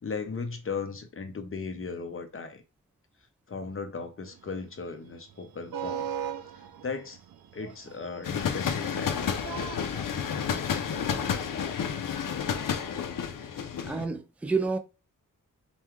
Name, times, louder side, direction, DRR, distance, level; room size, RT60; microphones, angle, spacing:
voice 1, 0.0-2.6 3.5-6.1 6.8-7.2 7.5-9.1, left 4 dB, 40° left, 0.8 m, -36 dB
sound 1, 4.3-10.1, right 9 dB, 90° right, 0.6 m, -39 dB
sound 2, 8.2-14.0, left 7 dB, 70° left, 0.6 m, -31 dB
voice 2, 13.8-14.8, right 4 dB, 5° right, 0.4 m, -29 dB
5.4 x 2.3 x 3.1 m
wide cardioid pair, 110°, 34 cm